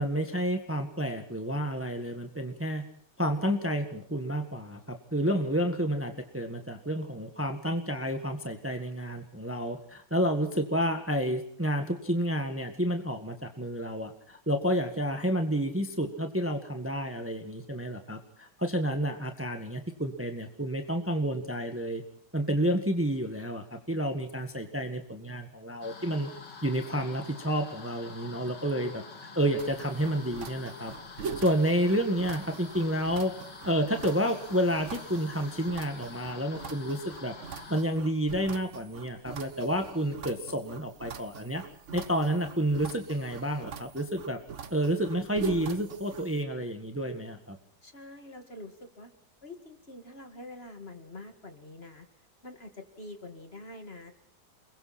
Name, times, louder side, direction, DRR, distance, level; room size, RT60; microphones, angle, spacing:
voice 1, 0.0-2.8 3.2-22.0 22.3-26.3 26.6-29.0 29.3-30.9 31.4-33.3 33.6-41.6 41.9-44.4 44.7-47.5, equal, 10° right, 6 dB, 1.6 m, -30 dB
sound 1, 25.8-37.8, left 4 dB, 80° left, 2.9 m, -47 dB
sound 2, 29.6-46.4, right 6 dB, 45° right, 1.3 m, -43 dB
voice 2, 47.8-49.1 49.4-52.1 52.4-54.1, left 2 dB, 35° left, 6 dB, 2.5 m, -46 dB
29.5 x 21.5 x 4.3 m, 0.65 s
omnidirectional pair, 1.8 m